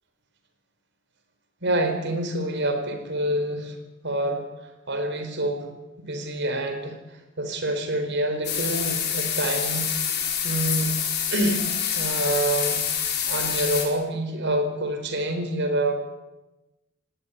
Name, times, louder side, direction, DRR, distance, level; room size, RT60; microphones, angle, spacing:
voice 1, 1.6-3.8 4.0-5.7 6.0-7.0 7.4-9.9 10.4-10.9 11.3-11.7 11.9-15.9, right 1 dB, 60° right, 6 dB, 4.2 m, -27 dB
sound 1, 8.4-13.8, left 8 dB, 55° left, 4.9 m, -26 dB
18.5 x 17.5 x 9.8 m, 1.0 s
head